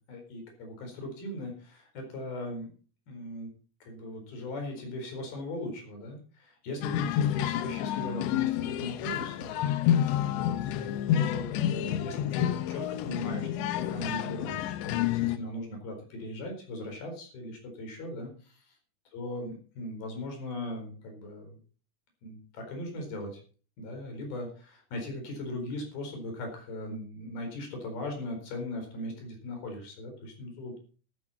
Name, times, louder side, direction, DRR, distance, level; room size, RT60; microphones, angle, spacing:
voice 1, 0.1-2.7 3.1-3.5 3.8-9.5 10.2-18.8 19.1-21.6 22.2-23.4 23.8-30.8, left 1 dB, 60° left, 4 dB, 6.3 m, -39 dB
sound 1, 6.8-15.4, left 11 dB, 90° left, 3.1 m, -29 dB
13.5 x 13.5 x 4.3 m, 0.39 s
omnidirectional pair, 4.9 m